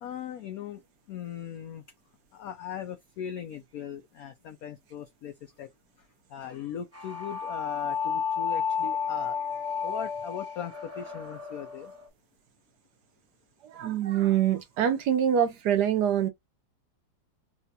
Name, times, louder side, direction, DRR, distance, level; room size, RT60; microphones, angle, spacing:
voice 1, 0.0-0.8 1.1-1.8 2.3-5.7 6.3-9.4 9.8-11.9, left 8 dB, 80° left, 0.8 m, -39 dB
sound 1, 6.9-12.1, left 6 dB, 20° right, 0.3 m, -32 dB
voice 2, 13.7-16.3, right 9 dB, 65° right, 1.1 m, -25 dB
4.1 x 2.2 x 2.7 m
omnidirectional pair, 2.1 m